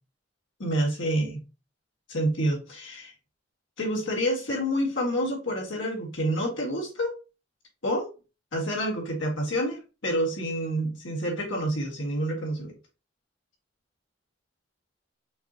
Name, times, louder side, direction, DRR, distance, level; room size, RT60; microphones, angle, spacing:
voice 1, 0.6-1.4 2.1-3.1 3.8-7.1 7.8-8.1 8.5-12.7, equal, 80° left, -1 dB, 1.7 m, -28 dB
5.8 x 3.0 x 2.8 m, 0.30 s
head